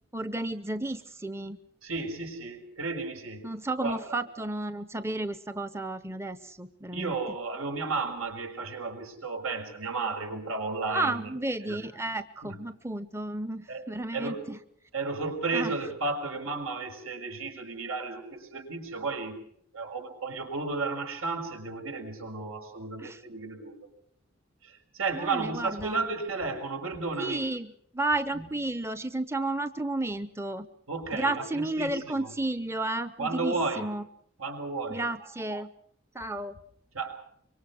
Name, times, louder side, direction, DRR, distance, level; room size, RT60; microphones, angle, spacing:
voice 1, 0.1-1.6 3.4-7.1 10.9-14.6 15.5-15.7 23.0-23.2 25.1-26.0 27.2-30.7 31.1-34.0 34.9-35.7 36.1-36.6, right 2 dB, 10° right, 11 dB, 0.9 m, -32 dB
voice 2, 1.8-3.5 3.8-4.0 6.9-11.3 11.7-11.8 12.4-12.5 13.7-13.8 14.1-14.4 14.9-19.4 19.7-23.8 24.6-27.5 28.3-28.5 30.9-32.3 33.2-33.9 34.4-35.0 36.9-37.2, right 3 dB, 80° right, 3 dB, 6.4 m, -33 dB
25.5 x 24.0 x 6.2 m, 0.67 s
head